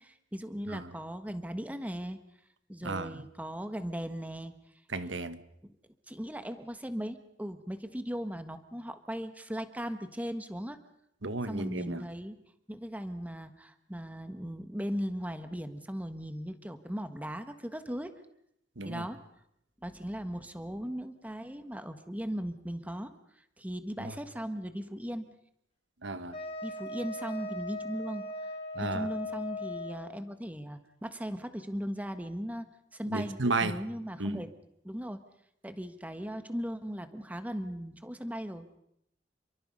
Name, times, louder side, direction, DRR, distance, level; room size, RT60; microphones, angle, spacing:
voice 1, 0.0-2.2 2.7-4.5 5.6-5.7 6.1-10.8 11.5-12.4 12.7-18.1 18.8-19.2 19.8-23.1 23.6-25.3 26.6-28.3 28.8-34.5 34.8-35.2 35.6-38.6, equal, 10° right, 1.5 m, -38 dB
voice 2, 2.8-3.1 4.9-5.4 11.2-12.0 18.8-19.0 24.0-24.1 26.0-26.3 28.7-29.1 33.1-33.8 34.2-34.4, right 3 dB, 80° right, 1.5 m, -33 dB
Wind instrument woodwind instrument, 26.3-30.2, left 2 dB, 30° left, 4.0 m, -39 dB
29.0 x 23.5 x 5.5 m
head